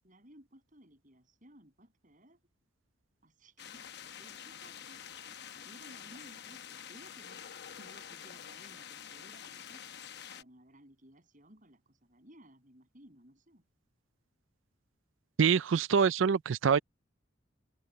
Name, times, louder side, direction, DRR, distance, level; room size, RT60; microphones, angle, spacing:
voice 1, 0.0-2.4 3.2-3.9 4.2-5.1 5.6-7.5 7.8-9.8 10.3-13.6, right 1 dB, 40° right, 7.9 m, -58 dB
sound 1, 3.6-10.4, left 8 dB, 60° left, 0.9 m, -47 dB
voice 2, 15.4-16.8, right 6 dB, 80° right, 0.4 m, -25 dB
head